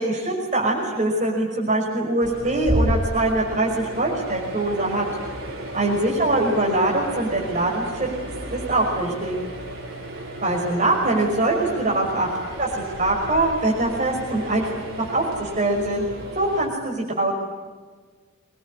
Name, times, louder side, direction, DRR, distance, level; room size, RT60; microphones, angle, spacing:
voice 1, 0.0-5.1 5.7-8.1 8.5-9.3 10.4-12.3 12.6-14.6 15.1-16.0 16.4-17.3, right 2 dB, 35° right, -2 dB, 5.7 m, -23 dB
sound 1, 2.2-16.7, right 1 dB, 85° right, 5.4 m, -33 dB
25.5 x 21.0 x 9.9 m, 1.4 s
head